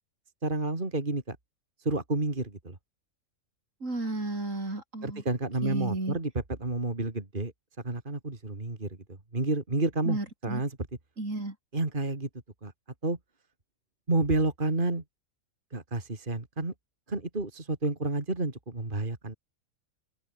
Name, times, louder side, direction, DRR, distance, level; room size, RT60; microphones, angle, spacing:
voice 1, 0.4-1.4 1.8-2.8 5.0-6.3 6.6-7.5 7.8-9.0 9.3-10.8 11.7-12.3 12.6-12.7 13.0-13.2 14.1-15.0 15.7-16.7 17.1-19.3, right 2 dB, 35° right, 3.2 m, -30 dB
voice 2, 3.8-5.2 5.6-6.2 10.1-10.6 11.2-11.6, right 2 dB, 65° right, 5.6 m, -33 dB
open air
omnidirectional pair, 1.5 m